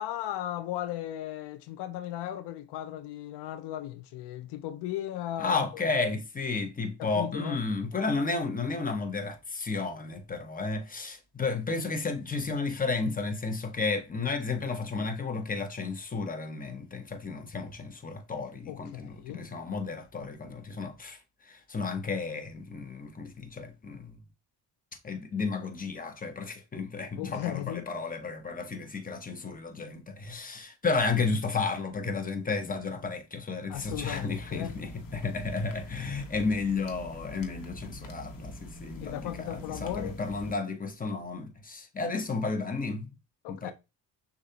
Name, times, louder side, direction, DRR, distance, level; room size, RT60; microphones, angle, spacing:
voice 1, 0.0-5.8 7.0-7.6 18.7-19.5 27.2-27.9 33.7-34.8 39.0-40.2 43.4-43.7, left 13 dB, 80° left, 0.5 m, -36 dB
voice 2, 5.4-24.2 25.0-43.1 43.5-43.7, left 4 dB, 20° left, 0.9 m, -32 dB
sound 1, 33.7-40.5, left 1 dB, 55° left, 1.2 m, -44 dB
6.3 x 2.5 x 2.8 m
cardioid pair, 85°, 41 cm